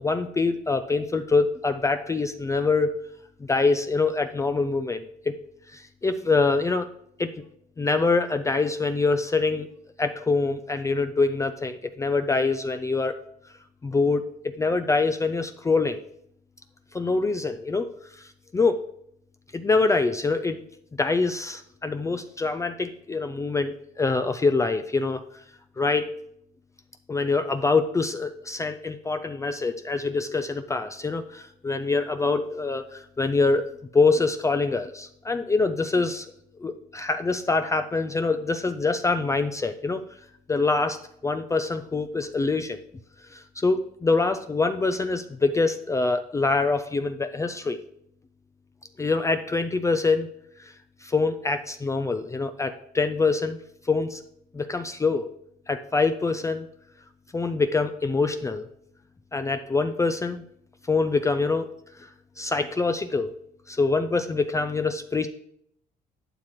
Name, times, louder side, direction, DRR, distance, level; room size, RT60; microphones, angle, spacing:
voice 1, 0.0-3.0 3.4-5.4 5.7-6.9 7.2-7.3 7.8-9.7 10.0-13.2 13.8-14.3 14.6-16.0 16.9-18.8 19.5-20.6 21.0-25.2 25.8-26.1 27.1-36.3 36.6-40.0 40.5-42.8 43.3-47.8 49.0-50.3 50.6-50.7 51.0-53.6 53.8-54.2 54.5-55.3 55.7-56.7 57.3-58.7 59.3-60.4 60.9-61.7 62.0-62.1 62.4-63.3 63.7-65.3, left 3 dB, 20° left, 8 dB, 0.5 m, -25 dB
11.5 x 7.4 x 3.1 m, 0.72 s
cardioid pair, 110°, 17 cm